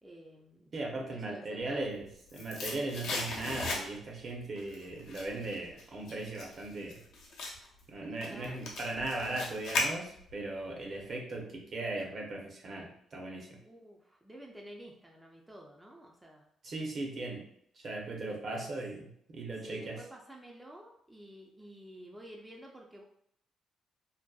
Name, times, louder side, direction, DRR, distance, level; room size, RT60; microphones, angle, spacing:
voice 1, 0.0-2.0 8.3-8.7 13.6-16.5 18.3-18.7 19.6-23.0, equal, 10° right, -1 dB, 0.4 m, -51 dB
voice 2, 0.7-7.0 7.9-13.6 16.6-17.5 17.8-19.0 19.3-20.0, right 2 dB, 50° right, 0 dB, 0.6 m, -38 dB
sound 1, 1.8-4.2 4.6-10.4 10.7-10.8, left 2 dB, 75° left, 0.6 m, -37 dB
2.6 x 2.1 x 2.3 m, 0.70 s
cardioid pair, 90°, 0 cm